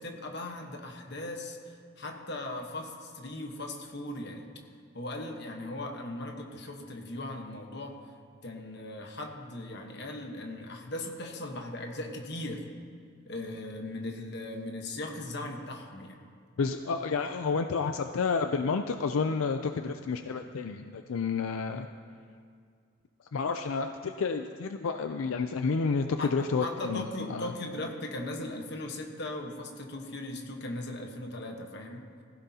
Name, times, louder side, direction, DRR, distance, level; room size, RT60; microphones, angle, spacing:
voice 1, 0.0-4.5 4.9-8.0 8.4-12.7 13.3-16.2 26.2-26.3 26.6-32.1, left 1 dB, 55° left, 3 dB, 1.2 m, -38 dB
voice 2, 16.6-21.9 23.3-27.5, left 4 dB, 80° left, 7 dB, 0.4 m, -30 dB
16.5 x 15.5 x 2.8 m, 2.1 s
head